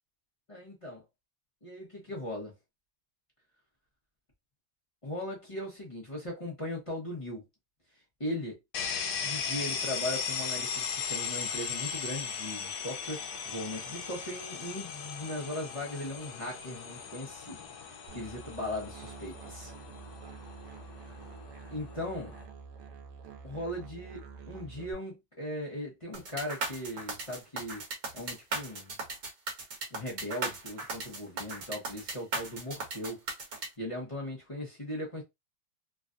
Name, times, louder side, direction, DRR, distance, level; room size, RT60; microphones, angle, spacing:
voice 1, 0.5-1.0 1.6-2.5 5.0-7.4 8.2-8.6 9.2-17.7 18.1-19.7 21.7-22.3 23.4-27.8 28.1-28.9 29.9-33.2 33.8-35.2, left 1 dB, 30° left, 0.6 m, -38 dB
sound 1, 8.7-22.4, left 6 dB, 65° left, 1.1 m, -38 dB
Musical instrument, 18.1-24.9, right 6 dB, 80° right, 1.2 m, -48 dB
sound 2, 26.1-33.7, right 3 dB, 50° right, 1.3 m, -36 dB
3.3 x 2.3 x 2.5 m
omnidirectional pair, 1.9 m